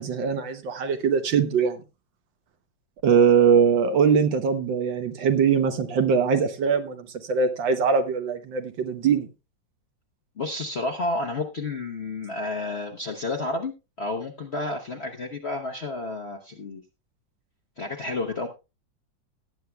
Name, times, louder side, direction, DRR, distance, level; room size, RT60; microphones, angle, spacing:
voice 1, 0.0-1.8 3.0-9.3, right 6 dB, 70° right, 1.6 m, -22 dB
voice 2, 10.4-13.7 14.0-16.8 17.8-18.5, left 2 dB, 45° left, 1.0 m, -30 dB
18.5 x 9.3 x 2.2 m
omnidirectional pair, 2.2 m